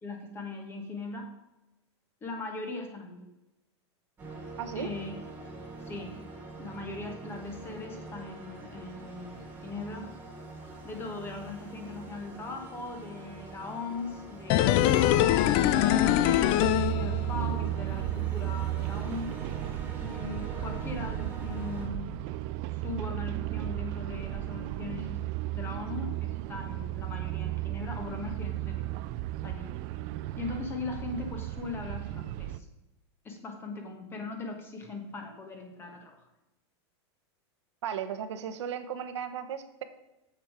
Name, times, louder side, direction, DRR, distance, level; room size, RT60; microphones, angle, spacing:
voice 1, 0.0-1.3 2.2-3.3 4.7-5.1 5.8-6.2 6.6-10.1 10.8-16.6 17.0-19.4 20.0-22.1 22.7-25.2 25.5-28.9 29.4-29.7 30.4-32.7 33.2-36.2, left 3 dB, 15° left, 4 dB, 1.4 m, -39 dB
sound 1, 4.2-21.9, right 2 dB, 15° right, 2.2 m, -45 dB
voice 2, 4.6-4.9 37.8-39.8, right 8 dB, 75° right, 9 dB, 1.0 m, -35 dB
sound 2, 14.5-17.6 17.9-18.0, left 12 dB, 35° left, 0.4 m, -23 dB
sound 3, 16.6-32.6, right 15 dB, 35° right, 0.4 m, -34 dB
7.3 x 7.3 x 4.9 m, 0.97 s
supercardioid pair, 155°, 15 cm